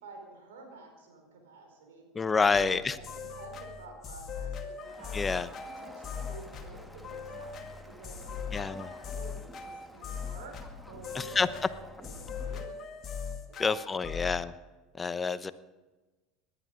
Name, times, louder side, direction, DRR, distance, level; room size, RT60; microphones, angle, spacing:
voice 1, 0.0-2.0 2.4-5.2 5.6-7.6 7.8-12.9 13.5-13.6 13.9-14.1, right 4 dB, 75° right, 2 dB, 4.7 m, -50 dB
voice 2, 2.1-3.0 5.1-5.5 8.5-8.9 11.1-11.5 13.6-14.5 14.9-15.5, left 4 dB, 25° left, 14 dB, 0.9 m, -28 dB
sound 1, 2.5-14.4, left 6 dB, 40° left, 2.2 m, -40 dB
Crowd, 4.8-12.7, left 1 dB, ahead, 1.5 m, -51 dB
19.5 x 11.0 x 5.2 m, 1.2 s
hypercardioid pair, 75°, 0 cm